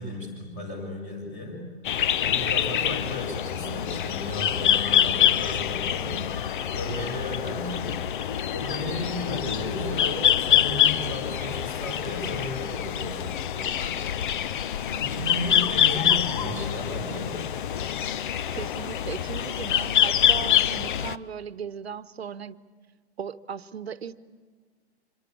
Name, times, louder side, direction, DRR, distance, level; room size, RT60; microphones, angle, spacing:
voice 1, 0.0-1.6 2.2-6.2 6.7-7.9 8.5-13.2 15.0-17.4, left 1 dB, 20° left, 7.4 m, -34 dB
sound 1, 1.8-21.2, left 10 dB, 50° left, 0.8 m, -25 dB
sound 2, 12.9-17.9, left 2 dB, 85° left, 3.0 m, -48 dB
voice 2, 18.5-22.6 23.2-24.2, right 7 dB, 70° right, 1.1 m, -37 dB
26.5 x 25.0 x 8.5 m
figure-of-eight pair, 120°, 32 cm